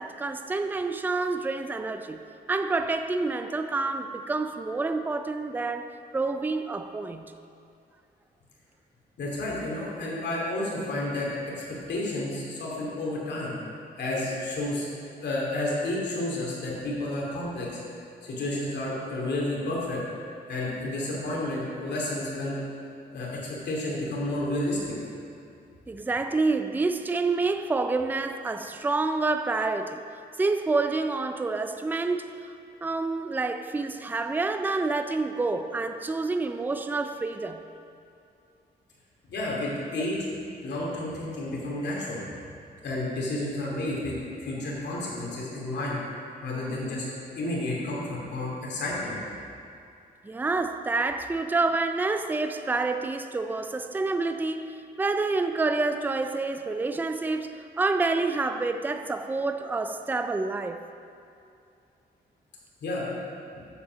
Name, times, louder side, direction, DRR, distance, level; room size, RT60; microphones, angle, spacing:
voice 1, 0.0-2.2 2.5-5.9 6.1-7.3 25.9-30.0 30.4-32.5 32.8-37.6 50.2-54.7 55.0-60.8, right 3 dB, 10° right, 8 dB, 0.4 m, -28 dB
voice 2, 9.2-11.3 11.5-13.6 14.0-14.9 15.2-17.8 18.2-20.0 20.5-22.6 23.1-24.9 39.3-40.2 40.6-42.2 42.8-44.1 44.4-46.0 46.4-47.0 47.4-49.2 62.8-63.1, left 1 dB, 75° left, -5 dB, 2.5 m, -31 dB
8.5 x 7.1 x 6.3 m, 2.6 s
wide cardioid pair, 150°, 18 cm